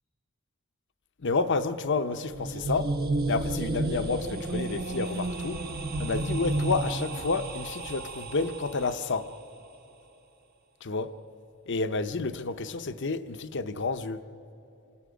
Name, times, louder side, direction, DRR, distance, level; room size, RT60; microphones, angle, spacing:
voice 1, 1.2-2.9 3.3-5.6 6.0-9.3 10.8-11.1 11.7-14.2, left 3 dB, 55° left, 0.8 m, -30 dB
sound 1, 2.2-9.1, right 2 dB, 45° right, 1.0 m, -32 dB
27.5 x 25.5 x 5.1 m
head